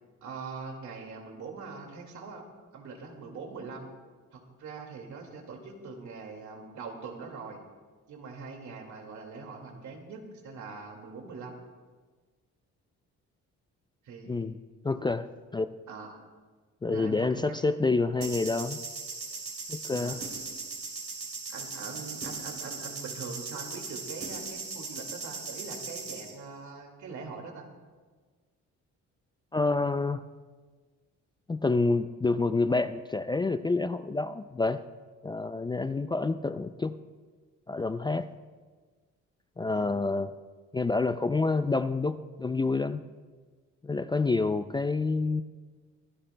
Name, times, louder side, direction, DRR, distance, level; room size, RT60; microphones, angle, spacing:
voice 1, 0.2-2.4 2.7-3.9 4.3-7.6 8.1-11.6 14.0-14.6 15.9-16.2 16.8-17.8 19.9-20.2 21.5-27.7 39.7-40.1, right 4 dB, 70° right, 2 dB, 2.2 m, -42 dB
voice 2, 14.8-15.3 15.5-15.7 16.8-18.8 19.7-20.2 29.5-30.2 31.5-34.8 35.2-37.0 37.7-38.3 39.6-40.3 40.7-43.0 43.8-45.4, left 3 dB, 15° left, 11 dB, 0.3 m, -28 dB
sound 1, 18.2-26.3, right 4 dB, 45° right, 2.9 m, -38 dB
25.0 x 11.5 x 2.2 m, 1.4 s
cardioid pair, 90°, 30 cm